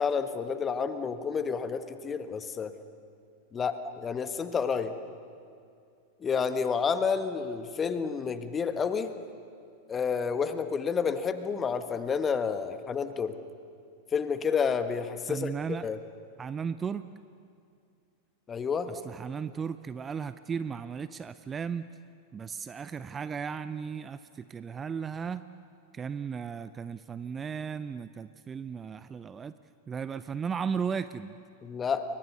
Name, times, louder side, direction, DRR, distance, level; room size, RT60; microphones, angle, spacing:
voice 1, 0.0-2.7 3.5-4.9 6.2-9.1 9.9-13.4 14.1-16.0 18.5-18.9 31.6-32.0, left 6 dB, 20° left, 10 dB, 1.4 m, -30 dB
voice 2, 15.3-15.9 16.4-17.1 18.9-21.9 22.3-25.4 25.9-29.5 29.9-31.4, right 6 dB, 20° right, 14 dB, 0.6 m, -35 dB
29.5 x 23.0 x 6.9 m, 2.3 s
figure-of-eight pair, 90°, 0 cm